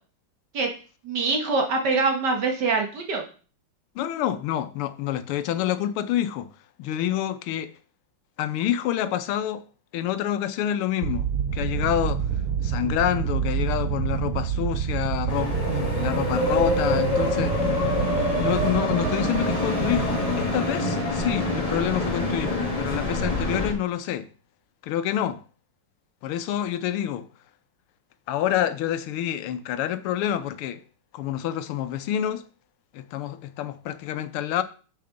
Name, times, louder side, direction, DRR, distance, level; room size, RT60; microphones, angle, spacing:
voice 1, 1.0-3.2, right 4 dB, 55° right, 1.9 m, -24 dB
voice 2, 4.0-6.5 6.8-7.7 8.4-9.6 9.9-11.3 11.5-12.2 12.6-17.6 18.4-24.3 24.8-25.4 26.2-27.3 28.3-30.8 31.1-32.4 32.9-34.6, left 11 dB, 90° left, 1.6 m, -27 dB
sound 1, 11.0-21.1, right 8 dB, 75° right, 1.6 m, -28 dB
sound 2, 15.3-23.7, left 1 dB, 20° left, 1.7 m, -26 dB
6.8 x 6.7 x 3.8 m
omnidirectional pair, 2.3 m